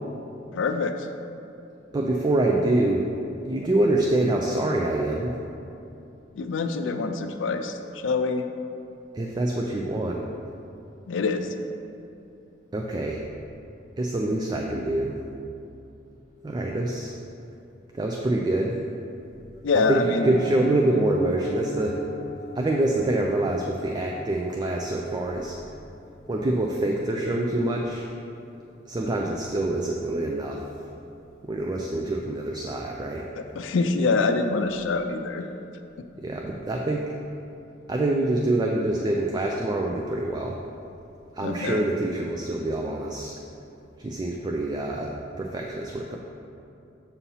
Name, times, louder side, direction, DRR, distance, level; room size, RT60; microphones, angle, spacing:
voice 1, 0.5-1.0 6.4-8.4 11.1-11.5 19.6-20.4 33.4-35.5 41.4-41.8, left 4 dB, 75° left, 7 dB, 0.4 m, -25 dB
voice 2, 1.9-3.1 3.4-5.3 9.1-10.2 12.7-13.2 14.0-15.2 16.4-17.2 17.9-18.8 19.7-22.0 22.6-25.6 26.3-28.1 28.9-30.6 31.4-33.3 36.2-37.1 37.9-40.6 41.3-43.4 44.0-46.2, right 1 dB, 20° right, 0 dB, 0.3 m, -25 dB
Piano, 20.2-31.1 31.3-31.6 31.9-32.0 32.4-32.6 32.9-33.0, left 1 dB, 60° left, 0.8 m, -43 dB
7.1 x 2.8 x 5.5 m, 2.7 s
head